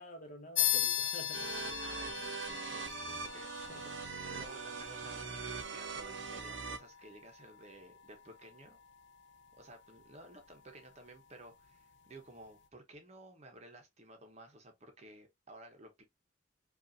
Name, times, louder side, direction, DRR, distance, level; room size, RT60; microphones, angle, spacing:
voice 1, 0.0-1.7 3.0-3.9, left 1 dB, 40° left, 1.4 m, -51 dB
sound 1, 0.6-10.5, left 11 dB, 60° left, 0.4 m, -40 dB
sound 2, 1.3-6.8, right 5 dB, 60° right, 0.8 m, -42 dB
voice 2, 1.8-3.5 4.3-5.2 5.7-8.8 9.6-16.0, right 2 dB, 35° right, 0.8 m, -54 dB
5.2 x 2.5 x 2.6 m
head